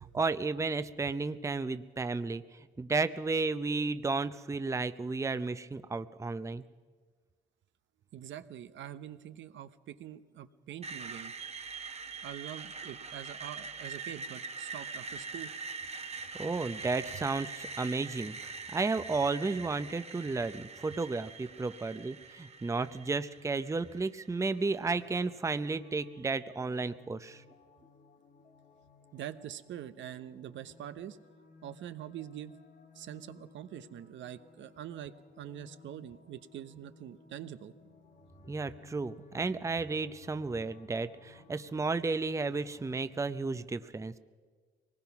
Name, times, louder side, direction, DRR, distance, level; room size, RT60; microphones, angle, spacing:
voice 1, 0.0-2.4 2.8-6.6 16.4-27.4 38.5-44.2, right 3 dB, 15° right, 12 dB, 0.6 m, -33 dB
voice 2, 8.1-11.3 12.2-15.5 29.1-31.2 31.6-32.5 32.9-37.7, right 10 dB, 70° right, 11 dB, 0.9 m, -44 dB
Screech, 10.8-24.8, right 4 dB, 30° right, 1.1 m, -43 dB
sound 1, 25.0-42.0, left 3 dB, 55° left, 2.1 m, -59 dB
24.0 x 19.5 x 5.9 m, 1.5 s
cardioid pair, 90°, 20 cm